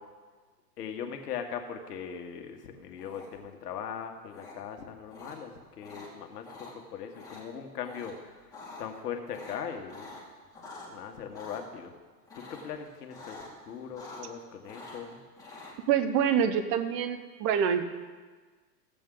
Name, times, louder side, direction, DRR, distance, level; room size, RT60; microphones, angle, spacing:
voice 1, 0.8-10.1 10.9-11.9 12.3-15.2, left 7 dB, 70° left, 5 dB, 1.5 m, -40 dB
sound 1, 3.0-3.5 4.3-4.5 5.1-5.4 5.8-6.1 6.4-6.7 7.1-7.4 7.8-8.1 8.4-8.8 9.3-10.9 11.3-11.6 12.3-12.8 13.1-13.5 13.8-14.4 14.6-15.7, left 3 dB, 5° left, 2.3 m, -46 dB
voice 2, 15.9-17.8, right 8 dB, 35° right, 10 dB, 0.8 m, -26 dB
15.5 x 7.7 x 3.8 m, 1.4 s
hypercardioid pair, 130°, 49 cm